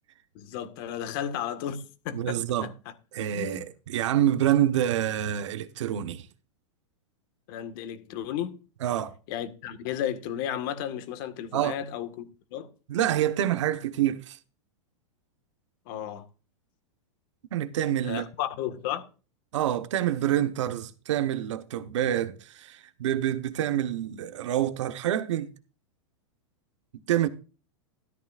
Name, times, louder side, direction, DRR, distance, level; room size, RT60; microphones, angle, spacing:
voice 1, 0.3-2.7 3.3-3.6 7.5-8.6 9.3-12.7 15.9-16.2 18.0-19.1, left 10 dB, 45° left, 1.6 m, -34 dB
voice 2, 2.1-2.7 3.1-6.3 8.8-9.1 11.5-11.8 12.9-14.4 17.5-18.2 19.5-25.5 27.1-27.3, right 11 dB, 75° right, 1.2 m, -27 dB
13.5 x 13.0 x 2.5 m
supercardioid pair, 155°, 16 cm